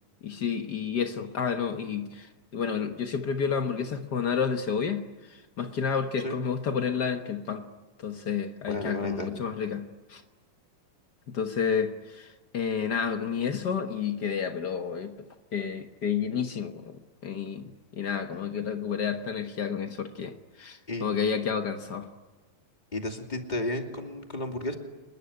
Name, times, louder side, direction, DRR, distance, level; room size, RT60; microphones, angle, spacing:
voice 1, 0.2-7.7 8.0-10.2 11.3-22.1, left 6 dB, 80° left, 0.9 m, -30 dB
voice 2, 8.7-9.3 20.9-21.1 22.9-24.8, left 1 dB, 15° left, 2.3 m, -33 dB
26.5 x 21.5 x 9.7 m
omnidirectional pair, 4.0 m